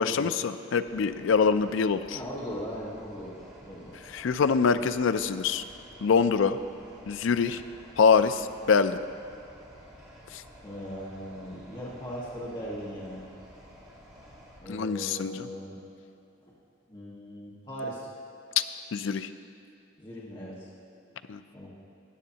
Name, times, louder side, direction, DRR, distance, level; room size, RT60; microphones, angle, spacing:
voice 1, 0.0-2.2 4.1-5.6 6.0-6.6 7.1-7.6 8.0-9.0 10.3-10.4 14.7-15.5 18.9-19.3 21.3-21.4, left 5 dB, 75° left, 11 dB, 0.4 m, -24 dB
sound 1, 0.8-14.6, equal, 15° right, 1.6 m, -52 dB
voice 2, 2.1-3.9 10.6-13.2 14.6-15.8 16.4-16.5 16.9-18.1 20.0-20.7 21.5-21.7, equal, 25° left, -8 dB, 1.4 m, -39 dB
14.5 x 9.2 x 2.8 m, 2.7 s
head